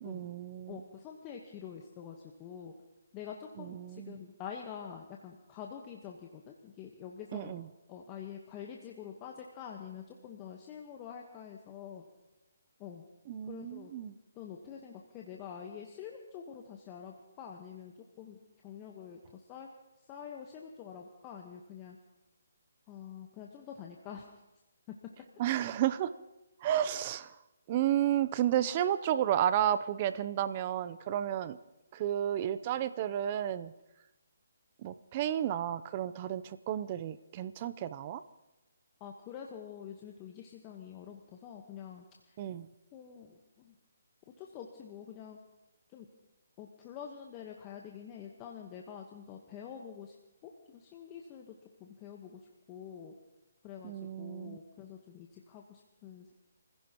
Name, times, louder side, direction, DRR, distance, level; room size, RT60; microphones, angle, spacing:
voice 1, 0.0-0.8 3.6-4.2 7.3-7.7 13.3-14.2 25.4-26.1 26.6-27.4 27.7-31.6 31.9-33.7 34.8-38.2 42.4-42.7 53.8-54.6, right 11 dB, 35° right, 14 dB, 0.6 m, -32 dB
voice 2, 0.7-2.7 3.1-7.6 7.9-12.0 12.8-13.0 13.5-13.9 14.3-19.7 20.1-22.0 22.9-24.3 39.0-42.4 42.9-43.7 44.4-45.4 45.9-46.1 46.6-50.2 50.4-53.1 53.6-56.3, left 8 dB, 25° left, 1 dB, 1.2 m, -46 dB
28.0 x 16.0 x 3.0 m, 1.0 s
hypercardioid pair, 155°, 0 cm